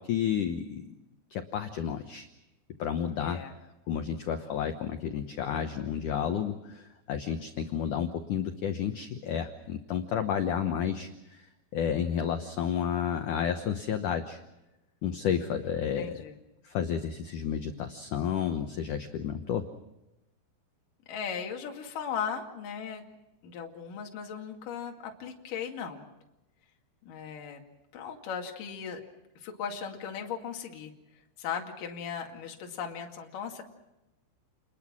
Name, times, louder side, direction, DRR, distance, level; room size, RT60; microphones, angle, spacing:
voice 1, 0.1-1.0 1.3-2.3 2.8-3.4 3.9-11.4 11.7-14.4 15.0-16.2 16.6-19.7, left 8 dB, 85° left, 7 dB, 1.7 m, -31 dB
voice 2, 3.2-3.5 15.4-16.4 21.1-23.0 23.4-26.1 27.0-27.6 27.9-29.0 29.4-30.9 31.4-33.6, left 7 dB, 50° left, 2 dB, 3.5 m, -37 dB
30.0 x 21.0 x 6.2 m, 0.95 s
omnidirectional pair, 5.4 m